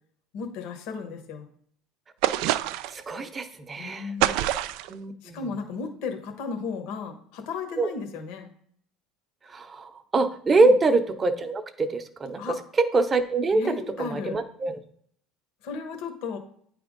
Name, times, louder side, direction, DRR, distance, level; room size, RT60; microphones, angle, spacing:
voice 1, 0.3-1.5 3.8-4.5 5.2-8.5 10.6-10.7 12.4-12.6 13.5-14.4 15.6-16.4, left 5 dB, 65° left, 4 dB, 1.3 m, -34 dB
sound 1, 2.2-3.0 4.2-4.9, right 14 dB, 70° right, 0.3 m, -25 dB
voice 2, 2.9-4.1 4.9-5.4 7.8-7.9 9.5-12.5 12.9-14.8, right 3 dB, 20° right, 9 dB, 0.7 m, -25 dB
9.0 x 3.4 x 5.2 m, 0.63 s
cardioid pair, 145°, 0 cm